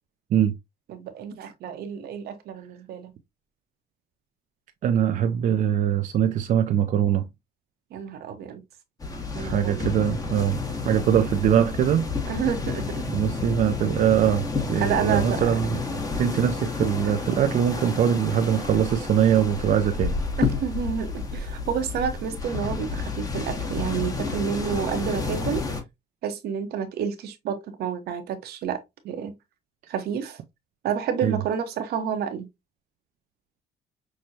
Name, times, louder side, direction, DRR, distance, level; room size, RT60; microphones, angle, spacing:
voice 1, 0.9-3.1 7.9-8.6 9.3-9.9 12.3-13.1 14.8-15.5 20.4-25.7 26.2-28.8 29.0-29.3 29.9-30.4 30.8-32.5, right 8 dB, 70° right, 0.9 m, -29 dB
voice 2, 4.8-7.3 9.4-10.6 10.8-12.1 13.1-15.8 16.2-20.2 31.2-31.4, right 9 dB, 50° right, 0.4 m, -22 dB
sound 1, 9.0-25.8, left 4 dB, 20° left, 1.0 m, -30 dB
6.1 x 2.2 x 2.7 m
cardioid pair, 110°, 17 cm